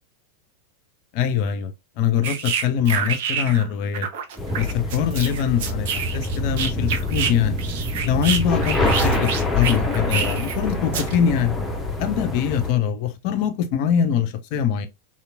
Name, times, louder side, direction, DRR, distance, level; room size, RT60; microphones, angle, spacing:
voice 1, 1.1-1.7 2.0-4.1 4.6-7.6 8.0-11.5 12.0-14.9, left 8 dB, 45° left, 0.5 m, -23 dB
sound 1, 2.2-3.7 3.9-7.3 7.6-10.6 10.9-11.2, right 7 dB, 55° right, 0.5 m, -27 dB
sound 2, 4.4-12.7, left 2 dB, 5° left, 0.7 m, -25 dB
2.9 x 2.7 x 2.4 m
figure-of-eight pair, 90°, 0 cm